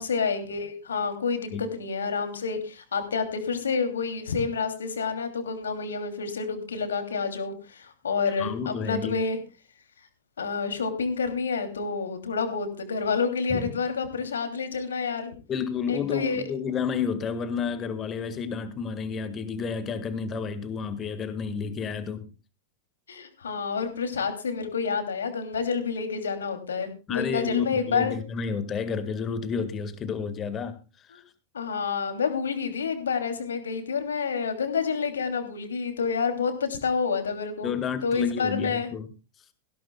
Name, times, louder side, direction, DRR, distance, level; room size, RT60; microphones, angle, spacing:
voice 1, 0.0-9.4 10.4-15.3 15.9-16.4 23.1-28.1 31.1-31.2 31.5-37.7 38.0-38.9, left 5 dB, 70° left, 2.8 m, -28 dB
voice 2, 8.4-9.2 13.5-13.7 15.5-22.3 27.1-31.2 37.6-39.1, left 6 dB, 25° left, 1.7 m, -31 dB
18.0 x 16.5 x 2.3 m
figure-of-eight pair, 90°, 0 cm